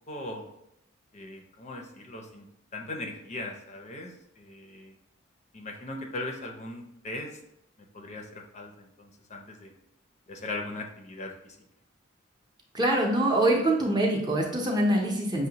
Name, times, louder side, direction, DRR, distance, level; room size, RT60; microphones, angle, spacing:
voice 1, 0.1-0.5 1.1-2.5 2.7-4.9 5.5-7.3 7.9-9.7 10.3-11.6, left 2 dB, 35° left, 1 dB, 0.5 m, -39 dB
voice 2, 12.7-15.5, right 1 dB, 20° right, 0 dB, 0.6 m, -24 dB
6.2 x 2.1 x 2.8 m, 0.78 s
head